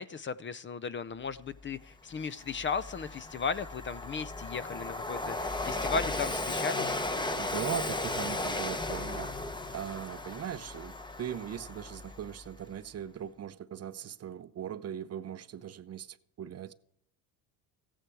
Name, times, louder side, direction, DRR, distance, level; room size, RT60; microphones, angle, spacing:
voice 1, 0.0-7.0, left 5 dB, 30° left, 0.5 m, -36 dB
Train, 1.7-1.8 2.2-12.6, left 2 dB, 10° left, 0.9 m, -36 dB
voice 2, 7.3-9.3 9.7-16.7, right 10 dB, 40° right, 0.7 m, -39 dB
15.0 x 10.0 x 4.7 m
cardioid pair, 95°, 38 cm